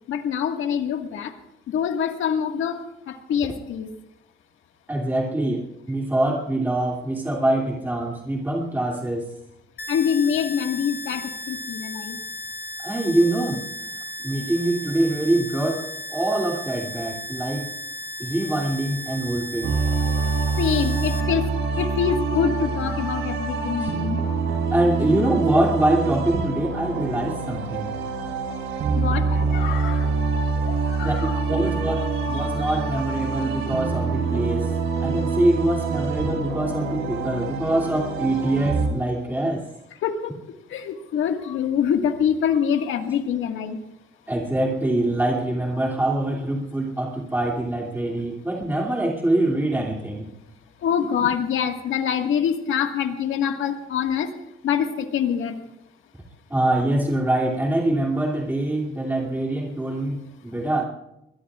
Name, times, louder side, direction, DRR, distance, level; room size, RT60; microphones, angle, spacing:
voice 1, 0.1-1.3 1.7-3.9 9.9-12.2 20.6-24.2 29.0-30.2 30.6-31.3 40.0-40.4 40.7-43.8 50.8-54.3 54.6-55.6, left 8 dB, 80° left, 5 dB, 1.8 m, -25 dB
voice 2, 4.9-9.2 12.8-13.6 14.2-17.7 18.2-19.8 23.8-23.9 24.7-28.0 31.0-34.7 35.0-39.7 44.3-50.3 56.5-60.8, right 1 dB, 10° right, -2 dB, 2.8 m, -24 dB
sound 1, 9.8-21.2, equal, 55° left, 2.9 m, -35 dB
sound 2, 19.6-38.9, right 4 dB, 85° right, 3.7 m, -25 dB
22.5 x 22.0 x 2.5 m, 0.84 s
cardioid pair, 90°, 20 cm